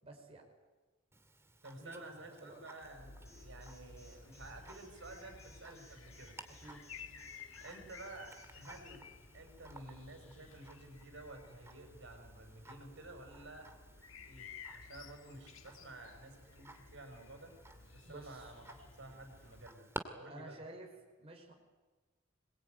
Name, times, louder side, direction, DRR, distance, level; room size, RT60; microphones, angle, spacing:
voice 1, 0.0-0.4 1.8-2.6 6.6-6.8 18.0-18.5 20.3-20.9 21.2-21.5, right 2 dB, 30° right, 1 dB, 4.7 m, -51 dB
Tick-tock, 1.1-20.0, right 2 dB, 15° right, 2.3 m, -55 dB
voice 2, 1.6-6.4 7.6-9.1 9.3-13.7 14.2-14.5 14.7-17.6 17.9-20.6, right 2 dB, 65° right, 5 dB, 5.7 m, -52 dB
sound 1, 2.8-19.7, left 5 dB, 75° left, 1.6 m, -55 dB
Alarm, 3.3-8.8, left 1 dB, 15° left, 7.8 m, -62 dB
25.5 x 21.5 x 9.2 m, 1.3 s
head